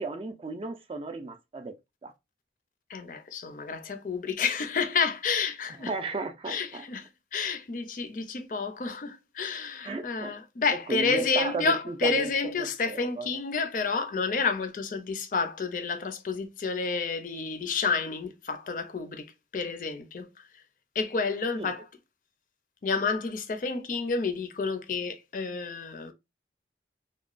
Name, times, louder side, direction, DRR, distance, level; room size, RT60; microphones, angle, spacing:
voice 1, 0.0-1.7 2.0-2.1 5.9-6.9 9.8-10.3 10.9-12.3 12.6-13.3 21.6-21.7, right 3 dB, 30° right, 0.3 m, -34 dB
voice 2, 2.9-5.9 6.5-20.6 20.9-21.9 22.8-26.1, left 4 dB, 45° left, 0.4 m, -30 dB
2.9 x 2.2 x 2.4 m
head